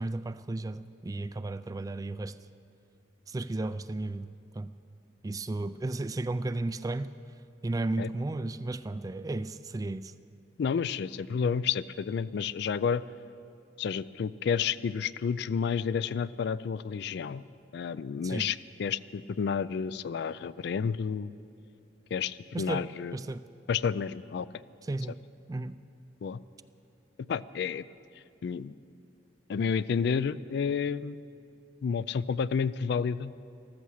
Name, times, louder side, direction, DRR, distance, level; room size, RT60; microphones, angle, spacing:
voice 1, 0.0-2.4 3.3-4.3 4.5-4.7 5.2-7.1 7.6-10.1 18.2-18.5 22.5-22.9 23.1-23.4 24.8-25.2 25.5-25.8, right 2 dB, 20° right, 14 dB, 0.3 m, -34 dB
voice 2, 10.6-13.0 13.8-17.4 17.7-21.3 22.1-23.2 23.7-24.5 26.2-26.4 27.3-27.8 28.4-28.8 29.5-31.2 31.8-33.3, left 6 dB, 60° left, 17 dB, 0.3 m, -30 dB
14.5 x 14.0 x 6.4 m, 2.5 s
head